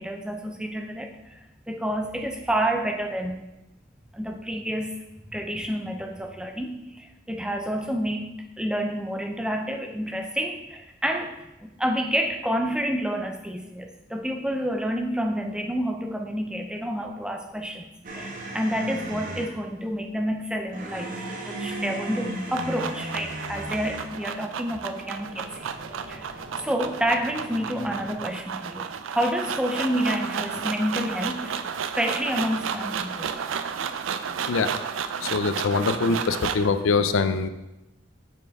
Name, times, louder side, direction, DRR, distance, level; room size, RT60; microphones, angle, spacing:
voice 1, 0.0-3.4 4.1-5.0 5.3-11.3 11.6-25.7 26.1-26.3 26.6-31.5 32.0-33.3, equal, 5° right, 4 dB, 0.4 m, -29 dB
sound 1, 18.0-19.6 20.7-24.2 25.1-28.1, right 1 dB, 40° right, 1.2 m, -36 dB
sound 2, 22.1-36.7, right 7 dB, 80° right, 0.4 m, -32 dB
voice 2, 35.2-37.5, left 4 dB, 85° left, 10 dB, 0.5 m, -23 dB
6.6 x 6.3 x 3.5 m, 0.97 s
head